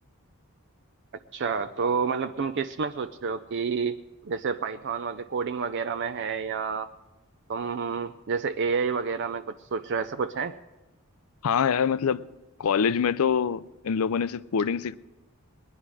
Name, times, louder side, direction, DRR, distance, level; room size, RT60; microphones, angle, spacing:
voice 1, 1.3-4.0 4.2-6.9 7.5-10.5, right 5 dB, 55° right, 0.4 m, -29 dB
voice 2, 11.4-12.3 12.6-14.9, left 7 dB, 85° left, 0.4 m, -25 dB
21.0 x 10.0 x 4.8 m
head